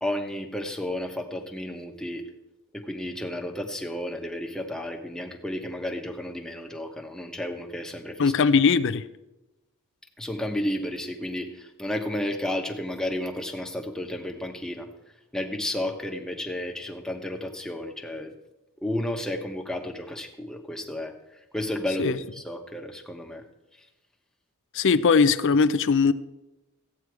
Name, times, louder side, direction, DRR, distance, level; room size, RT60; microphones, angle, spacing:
voice 1, 0.0-2.3 2.7-8.3 10.2-14.9 15.3-18.3 18.8-21.1 21.5-23.4, left 1 dB, 5° left, 2 dB, 1.1 m, -32 dB
voice 2, 8.2-9.1 22.0-22.2 24.7-26.1, left 5 dB, 55° left, 14 dB, 0.5 m, -20 dB
14.5 x 9.0 x 4.7 m, 0.99 s
head